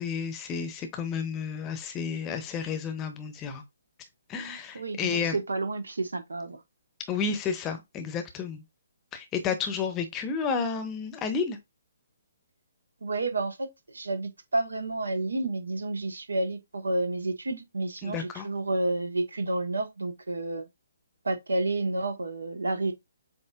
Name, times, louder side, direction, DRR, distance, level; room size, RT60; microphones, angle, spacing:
voice 1, 0.0-3.6 4.3-5.4 7.1-8.6 9.1-11.6 18.0-18.5, left 6 dB, 20° left, 0.9 m, -31 dB
voice 2, 4.7-6.6 13.0-20.7 21.2-22.9, right 2 dB, 70° right, 1.3 m, -30 dB
7.7 x 2.8 x 2.4 m
figure-of-eight pair, 135°, 0 cm